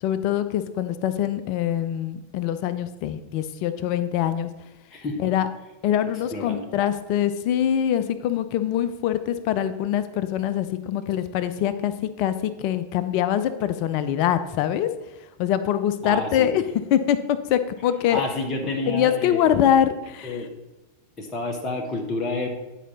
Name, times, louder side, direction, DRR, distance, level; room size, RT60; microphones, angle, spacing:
voice 1, 0.0-4.5 5.2-5.5 5.8-14.9 15.4-16.6 16.9-18.2 18.9-20.4, left 10 dB, 45° left, 12 dB, 0.5 m, -24 dB
voice 2, 6.3-6.6 16.0-16.5 18.1-19.5 20.2-20.5 21.2-22.5, left 2 dB, 25° left, 1 dB, 1.2 m, -29 dB
10.0 x 4.9 x 4.1 m, 1.0 s
figure-of-eight pair, 90°, 0 cm